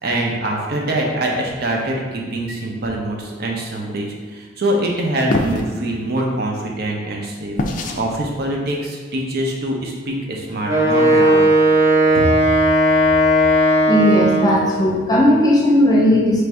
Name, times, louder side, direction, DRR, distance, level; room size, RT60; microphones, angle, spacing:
voice 1, 0.0-7.6 7.9-11.4 12.1-12.3, right 1 dB, 60° right, -1 dB, 0.6 m, -24 dB
sound 1, 5.3-5.7 7.6-8.0, left 2 dB, 45° left, 0.4 m, -22 dB
Wind instrument woodwind instrument, 10.7-14.7, right 1 dB, 15° right, 0.9 m, -15 dB
voice 2, 13.9-16.4, left 1 dB, 20° left, -3 dB, 0.7 m, -15 dB
3.2 x 2.6 x 4.5 m, 1.5 s
head